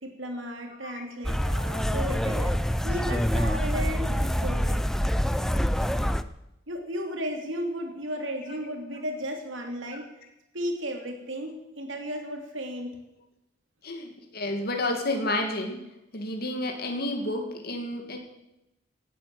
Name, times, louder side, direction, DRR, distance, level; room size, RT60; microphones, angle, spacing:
voice 1, 0.0-2.6 2.8-4.9 6.7-10.1 10.5-13.0, equal, 85° right, 3 dB, 3.0 m, -34 dB
sound 1, 1.2-6.2, equal, ahead, 0.5 m, -26 dB
voice 2, 13.8-15.8 16.1-18.2, left 1 dB, 55° left, 3 dB, 2.3 m, -30 dB
18.0 x 9.1 x 7.7 m, 0.91 s
head